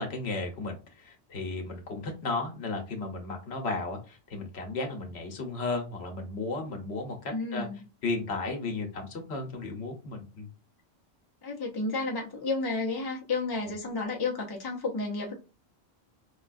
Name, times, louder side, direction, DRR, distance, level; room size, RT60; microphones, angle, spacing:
voice 1, 0.0-7.7 8.0-10.5 13.7-13.8, left 3 dB, 70° left, 1.1 m, -34 dB
voice 2, 7.3-7.8 11.4-15.3, left 3 dB, 25° left, 0.6 m, -31 dB
4.8 x 2.3 x 2.5 m
omnidirectional pair, 1.2 m